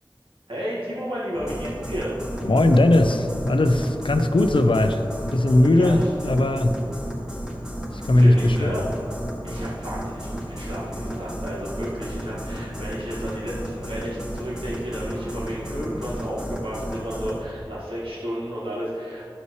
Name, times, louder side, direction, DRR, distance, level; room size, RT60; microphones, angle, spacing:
voice 1, 0.5-2.2 5.7-6.1 8.2-8.9 9.4-19.3, equal, 85° right, -8 dB, 1.9 m, -32 dB
sound 1, 1.3-17.4, equal, 10° right, 1.7 m, -33 dB
voice 2, 2.4-6.8 7.9-8.7, left 1 dB, 80° left, 7 dB, 0.6 m, -19 dB
13.0 x 5.6 x 3.2 m, 3.0 s
wide cardioid pair, 40°, 9 cm